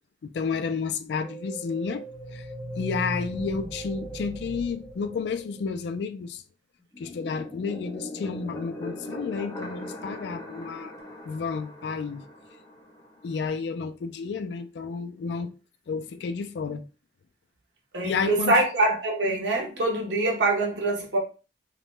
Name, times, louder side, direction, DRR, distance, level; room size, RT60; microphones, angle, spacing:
voice 1, 0.2-2.0 2.3-2.5 2.8-6.4 7.0-10.9 11.3-12.2 13.2-15.5 15.9-16.8 18.0-18.6, left 5 dB, 70° left, 0.3 m, -31 dB
sound 1, 1.2-5.8, right 1 dB, 25° right, 0.6 m, -38 dB
sound 2, 6.9-13.5, left 1 dB, 20° left, 0.6 m, -40 dB
voice 2, 17.9-21.2, right 2 dB, 90° right, 1.0 m, -24 dB
2.9 x 2.1 x 3.1 m
head